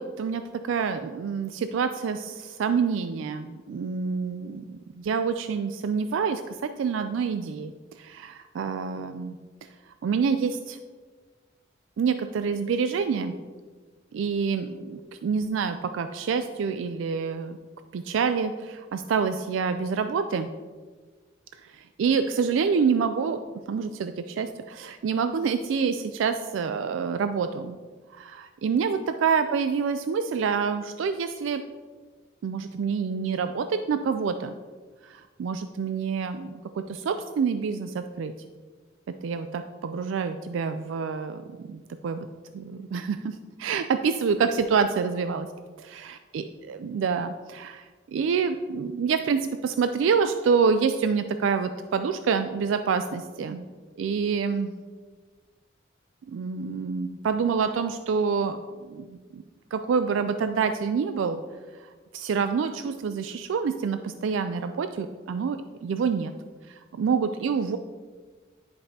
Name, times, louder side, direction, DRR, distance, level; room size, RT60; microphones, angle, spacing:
voice 1, 0.0-7.7 8.0-9.4 10.0-10.8 12.0-13.4 14.1-17.6 17.9-20.5 21.7-23.4 23.7-27.8 28.1-31.6 32.4-34.5 35.0-38.3 39.2-42.3 42.5-45.5 46.0-53.6 54.0-54.7 56.3-58.6 58.9-59.4 59.7-61.4 62.1-66.3 66.7-67.8, right 6 dB, 85° right, 9 dB, 0.3 m, -27 dB
10.0 x 5.4 x 2.8 m, 1.4 s
head